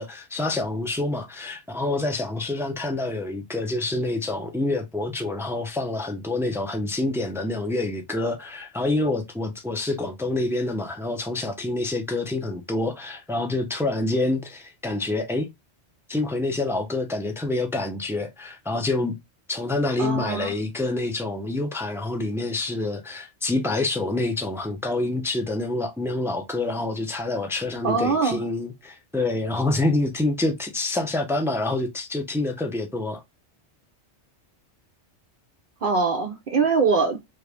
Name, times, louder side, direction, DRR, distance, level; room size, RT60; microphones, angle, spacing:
voice 1, 0.0-15.5 16.1-19.2 19.5-33.2, left 2 dB, 5° right, 0.4 m, -27 dB
voice 2, 20.0-20.5 27.8-28.4 35.8-37.2, right 4 dB, 55° right, 0.7 m, -23 dB
3.2 x 2.4 x 3.3 m
omnidirectional pair, 1.2 m